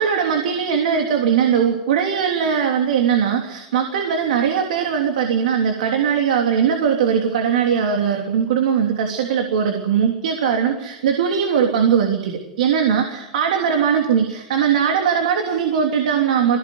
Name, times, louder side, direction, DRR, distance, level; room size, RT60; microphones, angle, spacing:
voice 1, 0.0-16.6, right 7 dB, 85° right, 3 dB, 3.3 m, -20 dB
23.0 x 17.0 x 9.7 m, 0.93 s
supercardioid pair, 125°, 4 cm